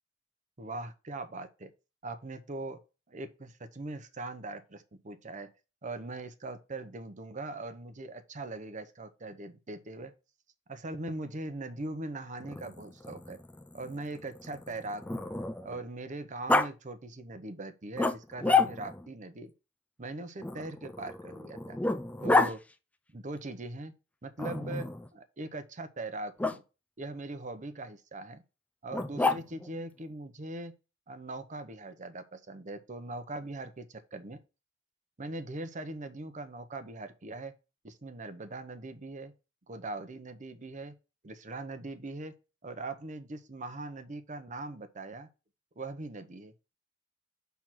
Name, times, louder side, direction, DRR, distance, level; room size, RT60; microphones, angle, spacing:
voice 1, 0.6-1.7 2.0-2.8 3.1-5.5 5.8-10.1 10.7-13.4 13.7-15.2 15.6-19.5 20.0-21.8 22.2-22.6 23.1-23.9 24.2-26.6 27.0-28.4 28.8-30.7 31.1-33.9 34.1-34.4 35.2-37.5 37.8-39.3 39.7-40.9 41.2-42.3 42.6-45.3 45.8-46.5, right 2 dB, 40° right, 0.8 m, -41 dB
Growling, 12.4-15.8 16.5-16.7 18.0-19.1 20.4-22.5 24.4-25.1 26.4-26.6 28.9-29.7, left 3 dB, 5° left, 0.3 m, -30 dB
6.0 x 3.5 x 6.0 m
head